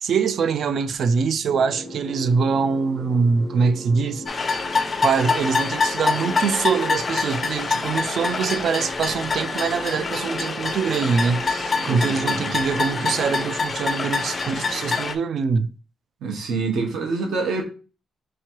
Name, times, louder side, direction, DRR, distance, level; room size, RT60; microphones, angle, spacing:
voice 1, 0.0-4.2 5.0-15.7, right 5 dB, 50° right, 0.4 m, -23 dB
sound 1, 1.5-15.1, equal, 25° right, 0.7 m, -38 dB
sound 2, 4.3-15.1, left 4 dB, 25° left, 0.4 m, -25 dB
voice 2, 11.8-12.5 16.2-17.6, right 4 dB, 75° right, 1.2 m, -26 dB
3.6 x 3.1 x 4.4 m
cardioid pair, 165°, 0 cm